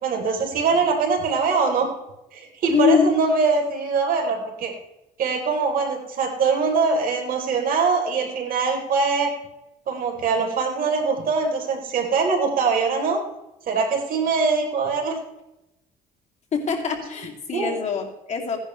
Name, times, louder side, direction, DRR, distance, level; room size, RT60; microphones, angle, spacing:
voice 1, 0.0-1.9 2.3-4.7 5.2-9.3 9.9-13.2 13.7-15.2 17.5-17.8, right 4 dB, 60° right, 2 dB, 3.6 m, -22 dB
voice 2, 2.7-3.2 16.5-18.6, left 6 dB, 40° left, 1 dB, 2.6 m, -23 dB
16.5 x 11.0 x 3.2 m, 0.90 s
cardioid pair, 110°, 17 cm